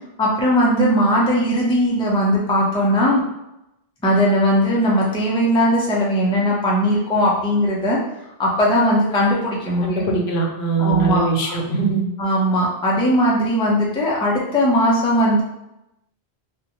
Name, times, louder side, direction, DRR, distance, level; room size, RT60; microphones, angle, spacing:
voice 1, 0.2-3.2 4.0-8.0 8.4-10.0 10.8-11.5 12.2-15.4, equal, 10° left, -4 dB, 0.3 m, -18 dB
voice 2, 9.8-12.0, right 4 dB, 85° left, 1 dB, 0.9 m, -21 dB
2.5 x 2.2 x 2.9 m, 0.88 s
omnidirectional pair, 1.1 m